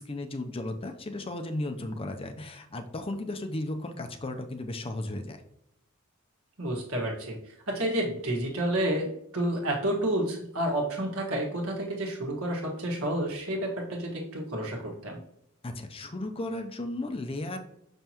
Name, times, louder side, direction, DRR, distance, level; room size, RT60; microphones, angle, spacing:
voice 1, 0.0-5.4 15.6-17.6, left 1 dB, 25° left, 7 dB, 0.5 m, -35 dB
voice 2, 6.6-7.4 7.7-15.2, right 1 dB, 85° right, -1 dB, 1.6 m, -30 dB
5.9 x 5.6 x 2.9 m, 0.79 s
head